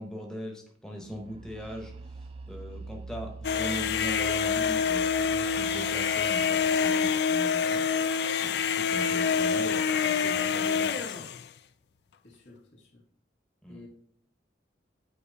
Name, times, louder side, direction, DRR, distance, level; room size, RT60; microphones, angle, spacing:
voice 1, 0.0-1.9 2.5-7.8 8.4-11.3 13.6-13.8, equal, 5° left, 1 dB, 0.8 m, -40 dB
sound 1, 1.0-8.7, right 3 dB, 30° right, 0.4 m, -46 dB
sound 2, 3.4-11.4, left 6 dB, 60° left, 0.3 m, -26 dB
voice 2, 12.2-13.0 13.7-13.9, left 2 dB, 85° left, -2 dB, 2.0 m, -51 dB
8.4 x 2.9 x 5.5 m, 0.62 s
head